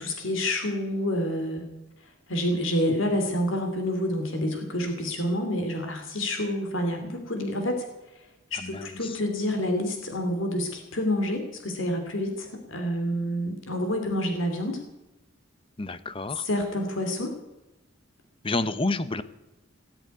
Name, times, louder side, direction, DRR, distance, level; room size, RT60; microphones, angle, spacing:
voice 1, 0.0-1.6 2.0-7.9 8.5-14.8 16.4-17.3, left 1 dB, 70° left, 5 dB, 2.8 m, -28 dB
voice 2, 8.5-9.2 15.8-16.5 18.4-19.2, left 2 dB, 25° left, 14 dB, 0.8 m, -30 dB
18.5 x 8.1 x 9.4 m, 0.97 s
head